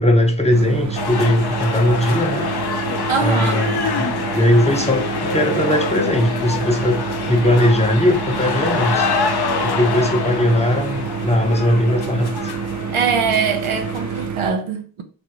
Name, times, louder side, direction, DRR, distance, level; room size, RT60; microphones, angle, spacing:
voice 1, 0.0-2.5 3.1-4.1 4.3-7.0 7.3-9.1 9.6-12.3, left 1 dB, 15° left, 0.6 m, -19 dB
sound 1, 0.5-14.5, right 6 dB, 40° right, 0.5 m, -28 dB
sound 2, 1.0-14.3, left 5 dB, 55° left, 0.6 m, -26 dB
voice 2, 3.1-3.7 12.9-15.0, right 6 dB, 85° right, 0.6 m, -22 dB
3.4 x 2.5 x 2.8 m
cardioid pair, 45°, 48 cm